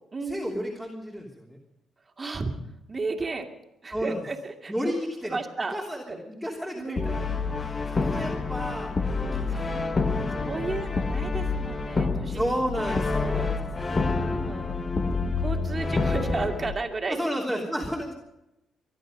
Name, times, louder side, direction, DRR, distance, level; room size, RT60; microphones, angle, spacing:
voice 1, 0.2-1.6 3.9-4.2 4.7-5.1 5.7-7.2 7.9-10.7 12.3-13.6 13.8-14.6 15.8-16.1 17.1-18.1, equal, 5° left, -2 dB, 3.3 m, -33 dB
voice 2, 2.2-2.6 2.9-3.5 3.8-4.9 5.2-5.8 6.1-6.2 6.7-7.4 8.0-8.2 9.5-9.9 10.4-13.5 14.2-14.8 15.4-17.2 17.5-17.6, right 3 dB, 30° right, 3 dB, 2.3 m, -33 dB
Brass instrument, 7.0-16.8, left 4 dB, 30° left, 1.4 m, -28 dB
24.0 x 11.5 x 5.3 m, 0.89 s
cardioid pair, 90°, 0 cm